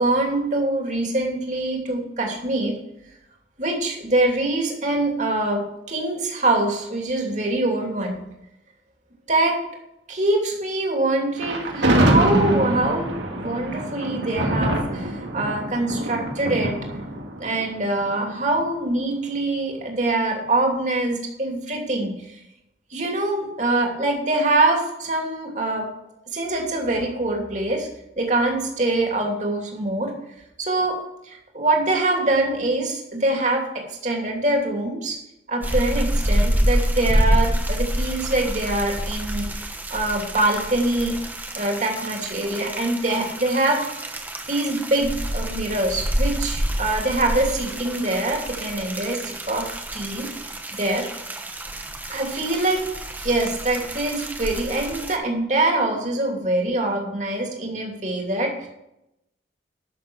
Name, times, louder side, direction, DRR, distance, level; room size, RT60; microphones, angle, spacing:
voice 1, 0.0-2.7 3.6-8.2 9.3-9.6 10.1-16.7 17.4-22.1 22.9-25.9 26.3-27.9 28.2-30.1 30.6-31.0 31.2-35.2 35.5-39.5 39.9-41.1 41.5-43.8 44.5-49.7 49.9-50.3 50.7-51.1 52.1-52.9 53.2-58.7, right 2 dB, 40° right, 1 dB, 2.9 m, -24 dB
Thunder, 11.4-18.6, right 1 dB, 85° right, 2.3 m, -24 dB
sound 1, 35.6-55.2, equal, 10° right, 1.1 m, -27 dB
12.5 x 7.0 x 6.3 m, 0.85 s
head